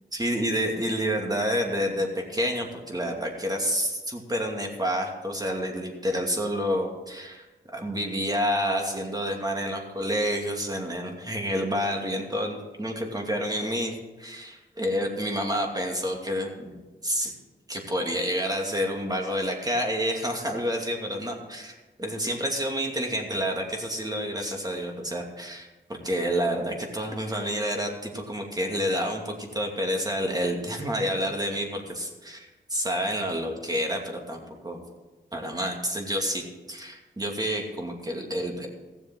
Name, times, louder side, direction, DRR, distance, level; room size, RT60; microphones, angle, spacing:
voice 1, 0.1-7.5 7.7-16.7 17.0-17.3 17.7-34.8 35.3-38.7, equal, 20° right, 1 dB, 2.6 m, -29 dB
16.0 x 7.3 x 6.4 m, 1.2 s
cardioid pair, 70°, 20 cm